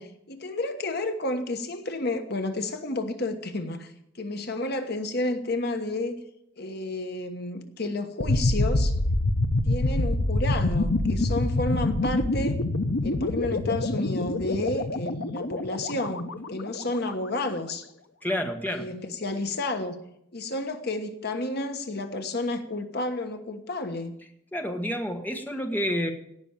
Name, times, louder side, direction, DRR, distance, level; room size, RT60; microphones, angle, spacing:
voice 1, 0.0-3.9 4.2-6.2 6.6-8.9 9.6-12.6 13.0-17.9 18.7-20.0 20.3-24.1, left 2 dB, 55° left, 6 dB, 1.3 m, -31 dB
sound 1, 8.2-17.1, left 2 dB, 70° left, 1.0 m, -26 dB
voice 2, 18.2-18.9 24.5-26.1, equal, 10° left, 3 dB, 1.4 m, -29 dB
17.5 x 6.1 x 8.9 m, 0.76 s
head